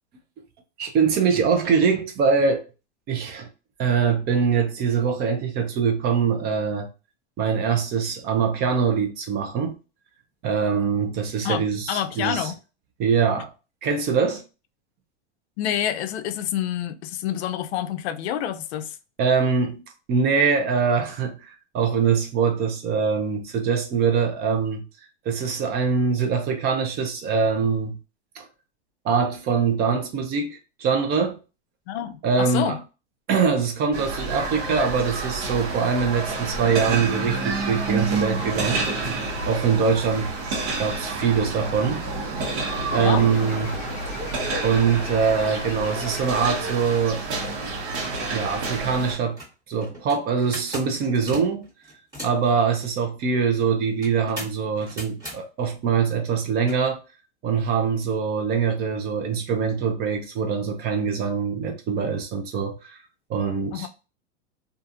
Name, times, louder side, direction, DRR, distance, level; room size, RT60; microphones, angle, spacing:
voice 1, 0.8-2.6 3.1-3.5 3.8-6.9 7.4-9.8 10.4-12.5 13.0-13.5 13.8-14.4 19.2-19.8 20.1-24.8 25.3-28.0 28.4-28.5 29.0-31.4 32.2-32.8 33.3-39.1 39.5-40.3 40.8-42.0 42.9-43.8 44.6-47.2 48.3-49.4 49.7-51.7 52.2-57.0 57.4-63.0 63.3-63.9, right 6 dB, 30° right, 0.5 m, -23 dB
voice 2, 11.4-12.6 15.6-19.0 31.9-32.8 43.0-43.3 63.7-63.9, left 10 dB, 70° left, 0.5 m, -28 dB
sound 1, 33.9-49.1, right 3 dB, 70° right, 1.1 m, -29 dB
sound 2, 43.0-46.8, left 3 dB, 20° left, 0.9 m, -39 dB
sound 3, 48.8-48.9 49.2-52.5 54.0-55.4 56.6-56.8, equal, 10° right, 1.4 m, -38 dB
2.7 x 2.5 x 2.4 m
supercardioid pair, 135°, 34 cm